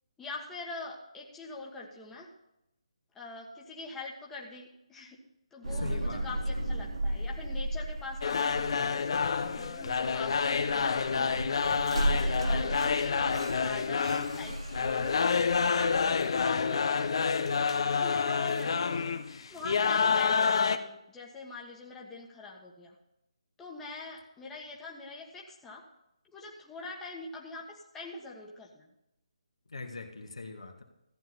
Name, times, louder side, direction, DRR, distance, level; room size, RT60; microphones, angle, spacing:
voice 1, 0.2-2.3 3.1-5.2 5.5-11.6 12.0-15.9 16.2-17.3 17.9-19.1 19.5-23.0 23.6-25.8 26.3-28.9, left 3 dB, 10° left, -2 dB, 1.5 m, -44 dB
sound 1, 5.6-18.1, right 1 dB, 80° right, 2.5 m, -35 dB
voice 2, 5.7-6.7 29.7-30.8, left 3 dB, 70° left, 3 dB, 2.0 m, -41 dB
sound 2, 8.2-20.8, left 5 dB, 55° left, 0.9 m, -28 dB
14.5 x 9.4 x 4.2 m, 0.85 s
figure-of-eight pair, 145°, 3 cm